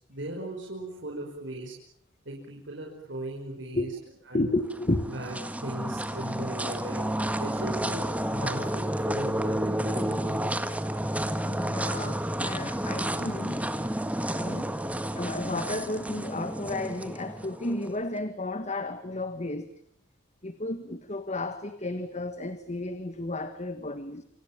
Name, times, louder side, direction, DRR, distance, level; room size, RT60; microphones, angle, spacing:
voice 1, 0.1-1.7 2.3-3.9 4.3-4.5 5.1-5.4 5.6-7.0 7.4-10.4, right 1 dB, 65° right, 5.3 m, -37 dB
voice 2, 4.3-5.0 11.4-13.7 14.3-14.7 15.1-19.7 20.4-24.2, left 2 dB, 35° left, 1.6 m, -32 dB
sound 1, 4.6-17.9, right 1 dB, 5° right, 1.7 m, -31 dB
28.0 x 27.0 x 7.4 m
head